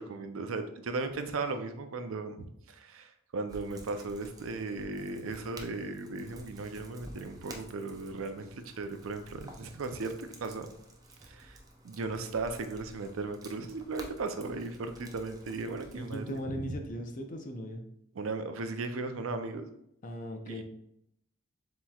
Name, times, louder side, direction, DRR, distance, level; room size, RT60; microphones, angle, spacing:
voice 1, 0.0-10.7 11.2-11.6 11.8-16.7 18.1-19.7 20.5-20.6, right 3 dB, 80° right, 8 dB, 0.5 m, -37 dB
sound 1, 3.5-16.4, right 1 dB, 20° right, 0.5 m, -52 dB
voice 2, 16.0-17.8 20.0-20.6, equal, 40° left, 4 dB, 0.6 m, -38 dB
7.3 x 3.0 x 2.3 m, 0.76 s
head